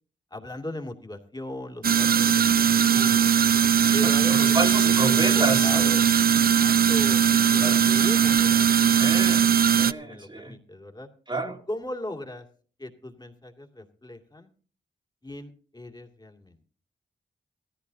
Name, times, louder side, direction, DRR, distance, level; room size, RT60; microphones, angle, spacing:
voice 1, 0.3-3.3 3.9-4.5 4.8-6.0 6.5-7.2 7.5-9.1 10.0-11.1 11.7-12.4 12.8-14.5 15.2-16.6, left 1 dB, 20° left, 2 dB, 2.4 m, -38 dB
sound 1, 1.8-9.9, right 8 dB, 55° right, 0.5 m, -20 dB
voice 2, 3.9-5.9 7.6-7.8 9.0-9.5 9.8-10.6 11.3-11.6, right 2 dB, 25° right, 3 dB, 2.2 m, -30 dB
17.0 x 14.0 x 2.8 m, 0.43 s
cardioid pair, 50°, 19 cm